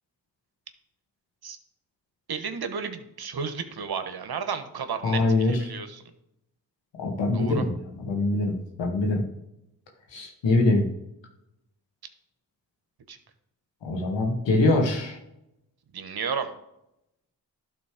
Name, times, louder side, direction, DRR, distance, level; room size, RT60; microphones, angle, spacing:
voice 1, 2.3-6.0 7.3-7.6 13.1-13.2 15.9-16.5, right 6 dB, 60° right, 8 dB, 1.2 m, -33 dB
voice 2, 5.0-5.6 7.0-9.2 10.1-10.9 13.8-15.2, left 2 dB, 85° left, 1 dB, 1.9 m, -24 dB
12.0 x 4.1 x 5.0 m, 0.83 s
supercardioid pair, 45°, 43 cm